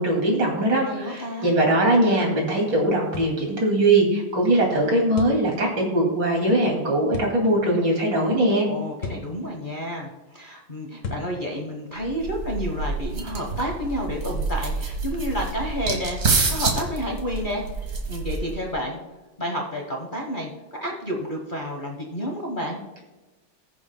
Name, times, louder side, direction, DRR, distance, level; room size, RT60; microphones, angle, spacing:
voice 1, 0.0-8.7, right 1 dB, 70° right, -1 dB, 3.2 m, -21 dB
voice 2, 0.8-1.6 8.6-17.6 18.1-19.0 19.4-20.5 20.8-22.8, equal, 30° left, -1 dB, 1.1 m, -30 dB
sound 1, 3.1-3.4 5.2-5.4 7.1-7.4 9.0-9.3 11.0-11.3, left 4 dB, 75° left, 2.1 m, -33 dB
sound 2, 12.0-18.7, right 3 dB, 50° right, 1.9 m, -28 dB
20.0 x 7.1 x 2.2 m, 1.2 s
omnidirectional pair, 2.1 m